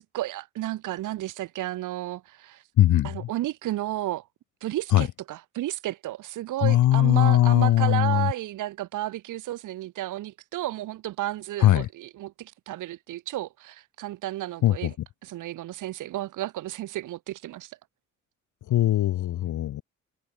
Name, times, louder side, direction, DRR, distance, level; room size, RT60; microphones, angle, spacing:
voice 1, 0.1-2.6 3.0-4.3 4.6-14.9 15.2-17.7, right 15 dB, 85° right, 4.6 m, -32 dB
voice 2, 2.8-3.3 4.9-5.1 6.6-8.3 11.6-11.9 14.6-14.9 18.7-19.8, left 13 dB, 80° left, 2.6 m, -20 dB
cardioid pair, 90°, 30 cm